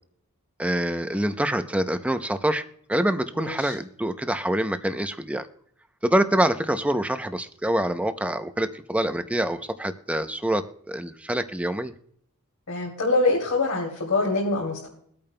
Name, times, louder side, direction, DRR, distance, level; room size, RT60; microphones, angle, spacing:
voice 1, 0.6-2.6 2.9-5.5 6.0-11.9, right 1 dB, 5° right, 9 dB, 0.6 m, -25 dB
voice 2, 3.4-3.7 12.7-14.9, left 2 dB, 80° left, -4 dB, 2.6 m, -24 dB
23.0 x 8.8 x 2.2 m, 0.66 s
head